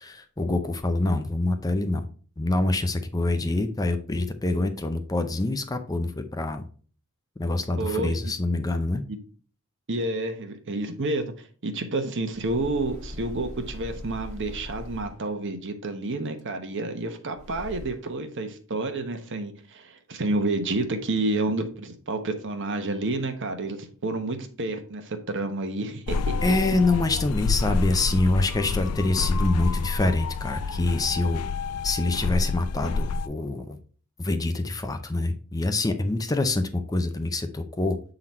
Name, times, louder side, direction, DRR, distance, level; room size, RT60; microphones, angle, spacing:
voice 1, 0.0-2.1 2.4-6.6 7.4-9.0 26.4-31.4 31.8-33.8 34.2-38.0, left 2 dB, 15° left, 7 dB, 0.5 m, -26 dB
voice 2, 7.8-8.3 9.1-9.2 9.9-11.3 11.6-23.8 24.0-26.6, right 2 dB, 55° right, 7 dB, 1.0 m, -29 dB
sound 1, 12.3-15.4 17.3-18.2, left 1 dB, 35° right, 2.1 m, -40 dB
sound 2, 26.1-33.3, left 4 dB, 85° left, 0.4 m, -28 dB
7.6 x 3.9 x 4.3 m, 0.41 s
head